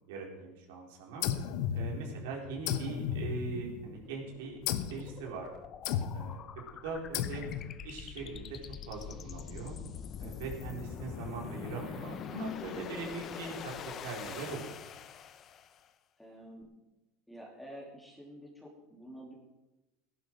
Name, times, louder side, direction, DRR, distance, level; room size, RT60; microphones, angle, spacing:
voice 1, 0.1-1.3 1.7-4.6 4.9-5.5 6.1-6.5 6.8-7.5 7.8-8.6 8.9-9.8 10.2-13.7 14.0-14.7, right 4 dB, 80° right, -1 dB, 4.1 m, -40 dB
sound 1, 1.2-2.3 2.7-4.0 4.7-5.1 5.8-6.4 7.1-7.8, left 10 dB, 60° left, 0.9 m, -34 dB
sound 2, 2.5-15.9, left 8 dB, 35° left, 0.7 m, -45 dB
voice 2, 16.2-16.7 17.3-19.3, equal, 5° left, -2 dB, 3.1 m, -49 dB
16.5 x 11.0 x 4.7 m, 1.0 s
supercardioid pair, 140°, 0 cm